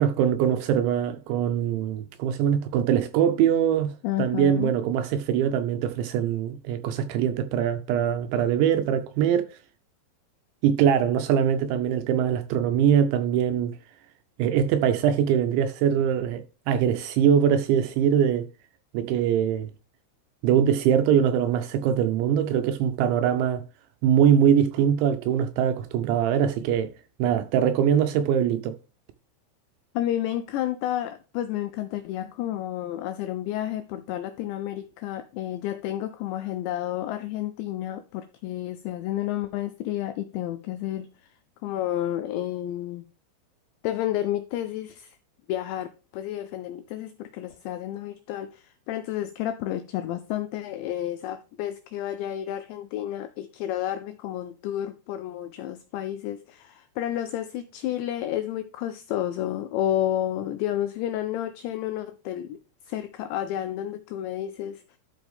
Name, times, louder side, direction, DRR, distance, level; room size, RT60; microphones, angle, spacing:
voice 1, 0.0-9.5 10.6-13.8 14.4-18.5 18.9-19.7 20.4-23.6 24.0-26.9 27.2-28.7, right 9 dB, 80° right, 2.7 m, -22 dB
voice 2, 4.0-4.7 30.0-41.1 41.6-43.0 43.8-45.2 45.5-45.9 46.1-62.6 62.9-64.8, left 12 dB, 90° left, 2.5 m, -31 dB
12.0 x 5.1 x 3.5 m
omnidirectional pair, 5.7 m